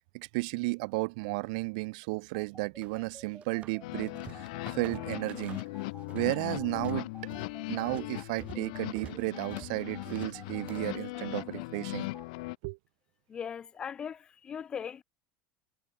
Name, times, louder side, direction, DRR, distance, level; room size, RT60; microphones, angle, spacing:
voice 1, 0.1-4.5 4.7-5.6 6.1-7.1 7.7-12.1 12.6-12.8, right 27 dB, 80° right, 1.0 m, -33 dB
sound 1, 2.3-12.2, right 3 dB, 10° right, 1.5 m, -52 dB
sound 2, 2.8-3.8 4.1-6.3 6.6-11.0, right 10 dB, 35° right, 0.8 m, -50 dB
sound 3, 3.8-12.6, left 24 dB, 85° left, 1.4 m, -39 dB
voice 2, 13.3-15.0, left 7 dB, 25° left, 0.4 m, -39 dB
cardioid pair, 155°, 4 cm